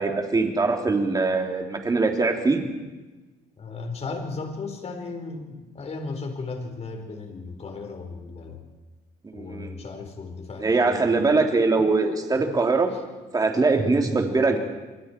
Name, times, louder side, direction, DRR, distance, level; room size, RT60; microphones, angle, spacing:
voice 1, 0.0-2.6 9.2-9.8 10.6-12.9 13.3-14.6, right 3 dB, 20° right, 3 dB, 3.3 m, -22 dB
voice 2, 3.6-8.6 9.3-11.3 12.9-13.0, left 4 dB, 40° left, 4 dB, 4.4 m, -36 dB
29.0 x 23.0 x 4.6 m, 1.2 s
cardioid pair, 110°, 17 cm